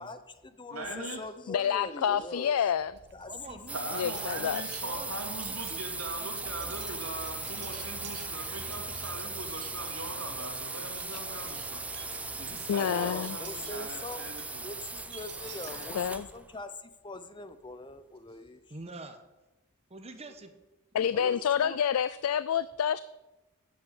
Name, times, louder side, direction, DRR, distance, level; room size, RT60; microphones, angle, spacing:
voice 1, 0.0-2.6 3.1-3.6 12.7-18.6 21.1-21.8, left 2 dB, 20° left, 0.7 m, -43 dB
voice 2, 0.7-1.2 3.7-11.8 12.4-14.7, right 2 dB, 80° right, 2.8 m, -41 dB
voice 3, 1.5-2.9 4.0-4.7 12.7-13.4 15.9-16.3 20.9-23.0, left 8 dB, 75° left, 0.4 m, -28 dB
Wind chime, 2.8-16.6, right 4 dB, 50° right, 1.0 m, -50 dB
voice 4, 3.3-4.5 4.8-5.1 5.5-5.8 6.1-6.3 6.6-6.7 18.7-19.2 19.9-20.5, right 2 dB, 30° right, 1.2 m, -45 dB
sound 1, 3.7-16.4, right 3 dB, 5° right, 0.4 m, -38 dB
9.4 x 8.1 x 8.5 m
head